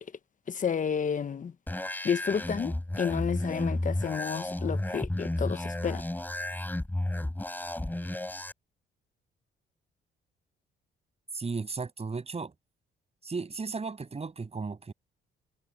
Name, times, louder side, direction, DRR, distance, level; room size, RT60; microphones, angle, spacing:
voice 1, 0.5-1.5 2.0-6.0, left 7 dB, 40° left, 1.1 m, -31 dB
sound 1, 1.7-8.5, left 1 dB, 10° left, 4.4 m, -33 dB
voice 2, 11.3-12.5 13.2-14.9, right 4 dB, 30° right, 7.3 m, -35 dB
cardioid pair, 90°, 20 cm